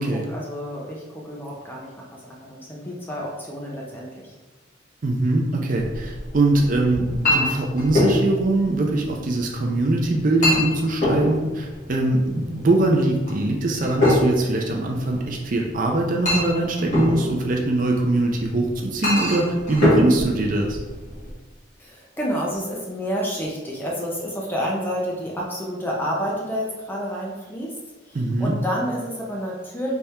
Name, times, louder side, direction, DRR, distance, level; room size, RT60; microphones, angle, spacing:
voice 1, 0.0-4.3 21.8-27.7 28.1-30.0, equal, 10° left, -3 dB, 0.6 m, -29 dB
voice 2, 5.0-20.8 28.1-28.5, right 2 dB, 40° right, 1 dB, 0.5 m, -22 dB
Chink clink, 5.8-21.3, left 1 dB, 40° left, 1.4 m, -26 dB
3.5 x 3.3 x 4.2 m, 1.2 s
head